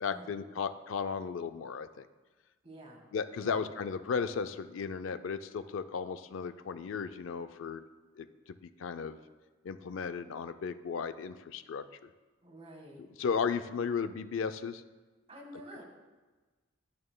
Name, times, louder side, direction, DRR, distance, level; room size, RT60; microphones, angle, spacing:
voice 1, 0.0-2.1 3.1-7.8 8.1-8.3 8.6-9.2 9.6-11.8 13.2-14.8, left 6 dB, 75° left, 10 dB, 0.4 m, -35 dB
voice 2, 2.6-3.0 3.4-3.6 12.4-13.0 15.3-15.8, right 1 dB, 30° right, 0 dB, 1.6 m, -49 dB
11.0 x 9.5 x 2.2 m, 1.3 s
head